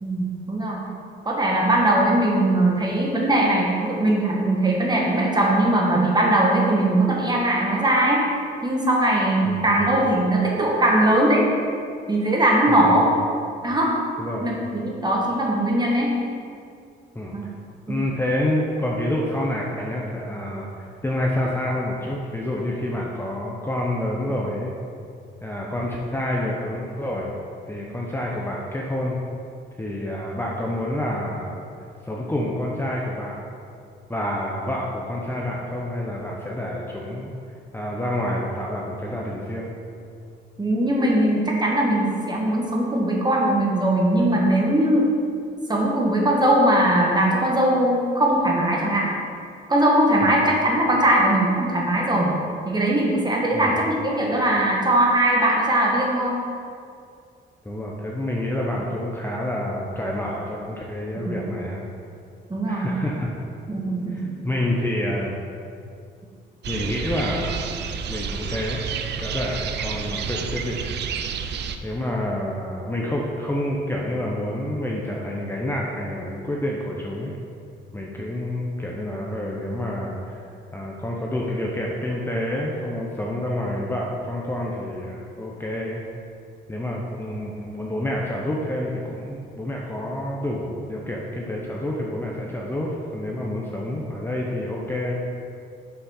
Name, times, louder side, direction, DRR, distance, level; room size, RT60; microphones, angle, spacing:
voice 1, 0.0-0.8 1.2-8.3 8.6-11.4 12.1-13.1 13.6-14.0 14.4-16.1 17.3-17.4 17.9-18.0 40.6-45.1 45.7-49.1 49.7-52.3 52.6-56.4 61.3-61.4 62.5-62.9 63.7-64.4, right 1 dB, 20° right, -2 dB, 1.4 m, -20 dB
voice 2, 9.4-10.2 12.7-13.0 14.2-14.5 17.1-17.5 17.9-24.7 25.4-27.3 27.7-29.2 29.8-31.6 32.0-33.4 34.1-37.3 37.7-39.7 50.2-50.4 53.5-53.8 57.6-61.8 62.7-63.3 64.1-65.4 66.7-67.7 68.1-68.8 69.2-70.8 71.8-77.3 77.9-80.4 80.7-86.0 86.7-95.2, left 1 dB, 10° left, -3 dB, 0.7 m, -28 dB
sound 1, 66.6-71.8, right 6 dB, 60° right, 0.5 m, -30 dB
5.8 x 4.0 x 5.6 m, 2.4 s
cardioid pair, 90°, 20 cm